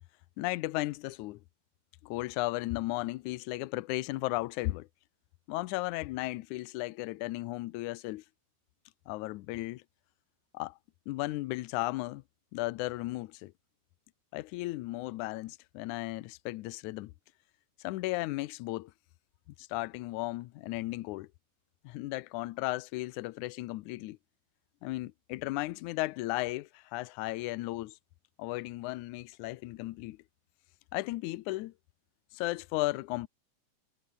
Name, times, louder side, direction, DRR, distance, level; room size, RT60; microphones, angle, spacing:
voice 1, 0.4-1.4 2.0-4.9 5.5-8.2 9.1-9.8 10.5-10.8 11.1-12.2 12.5-13.5 14.3-17.1 17.8-18.9 19.6-21.3 21.8-24.2 24.8-28.0 28.4-30.2 30.9-31.7 32.3-33.3, left 19 dB, 75° left, 2.0 m, -35 dB
omnidirectional pair, 3.8 m